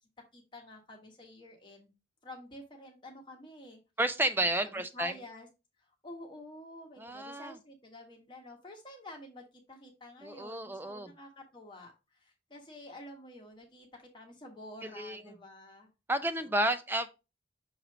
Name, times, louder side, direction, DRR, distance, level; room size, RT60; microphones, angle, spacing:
voice 1, 0.3-1.9 2.2-3.8 4.4-5.5 6.0-11.9 12.5-13.9 14.1-15.9 16.2-16.5, left 1 dB, 25° left, 1 dB, 1.3 m, -49 dB
voice 2, 4.0-5.1 7.0-7.5 10.2-11.1 14.8-15.2 16.1-17.1, right 1 dB, 10° right, 10 dB, 0.5 m, -31 dB
6.5 x 3.1 x 4.9 m, 0.28 s
head